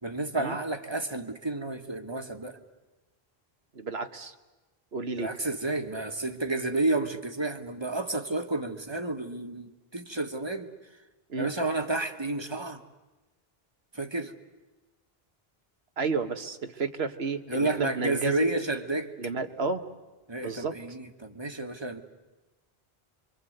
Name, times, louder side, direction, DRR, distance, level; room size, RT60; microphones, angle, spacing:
voice 1, 0.0-2.6 5.2-10.7 11.4-12.8 13.9-14.3 17.5-19.1 20.3-22.0, right 2 dB, 25° right, 6 dB, 1.5 m, -31 dB
voice 2, 3.7-4.3 4.9-5.3 11.3-11.5 16.0-18.5 19.2-19.8 20.4-20.7, right 4 dB, 80° right, 7 dB, 1.7 m, -31 dB
27.5 x 24.5 x 8.0 m, 1.1 s
omnidirectional pair, 1.0 m